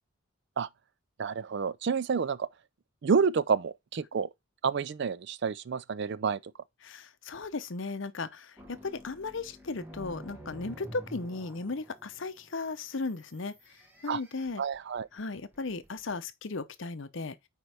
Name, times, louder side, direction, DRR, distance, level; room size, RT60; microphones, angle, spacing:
voice 1, 1.2-2.5 3.0-4.3 4.6-6.4 14.1-14.2 14.6-15.1, right 6 dB, 50° right, 0.4 m, -29 dB
voice 2, 6.8-14.6 15.1-17.4, left 3 dB, 60° left, 0.7 m, -36 dB
sound 1, 8.6-16.2, equal, 10° right, 1.3 m, -49 dB
9.3 x 4.5 x 3.4 m
head